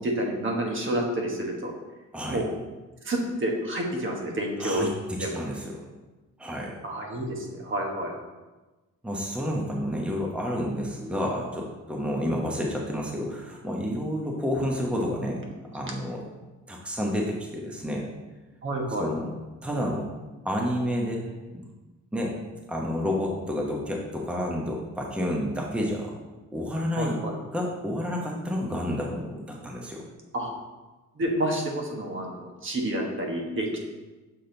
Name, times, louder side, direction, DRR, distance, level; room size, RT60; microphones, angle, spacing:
voice 1, 0.0-1.7 2.3-2.5 3.0-4.9 5.2-5.4 6.8-8.1 18.6-19.1 27.0-27.3 30.3-30.5 31.2-33.8, right 1 dB, 40° right, 1 dB, 1.3 m, -29 dB
voice 2, 4.6-5.7 6.4-6.7 9.0-15.4 15.7-16.2 16.7-18.1 19.0-19.3 19.6-20.1 20.4-21.2 21.5-21.6 22.1-22.3 22.7-26.1 26.5-27.2 27.5-30.0, equal, 5° right, -1 dB, 0.9 m, -30 dB
6.8 x 4.0 x 3.9 m, 1.2 s
cardioid pair, 90°, 30 cm